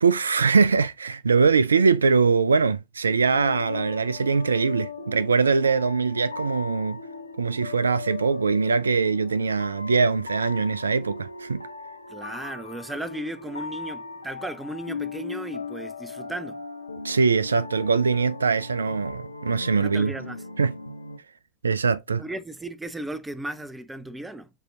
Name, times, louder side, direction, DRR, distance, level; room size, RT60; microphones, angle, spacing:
voice 1, 0.0-7.0 7.4-11.6 17.0-20.1 20.6-20.7 21.6-22.2, right 4 dB, 75° right, 0.3 m, -22 dB
sound 1, 3.2-21.2, left 4 dB, 85° left, 0.5 m, -38 dB
voice 2, 12.1-16.6 19.8-20.4 22.2-24.5, right 1 dB, 5° right, 0.4 m, -35 dB
7.9 x 2.7 x 2.5 m
figure-of-eight pair, 90°, 0 cm